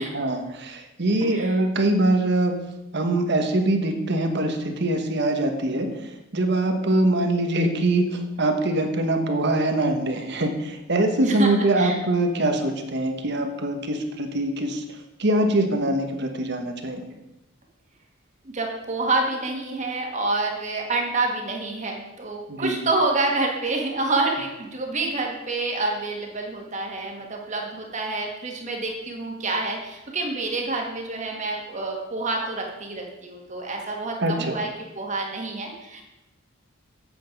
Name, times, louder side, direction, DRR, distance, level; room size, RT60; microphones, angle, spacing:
voice 1, 0.0-2.5 2.9-17.0 22.5-22.8 34.2-34.6, right 1 dB, 55° right, 5 dB, 1.3 m, -23 dB
voice 2, 18.4-34.7 35.0-36.0, right 3 dB, 35° right, 1 dB, 1.7 m, -27 dB
8.2 x 7.8 x 5.3 m, 0.97 s
head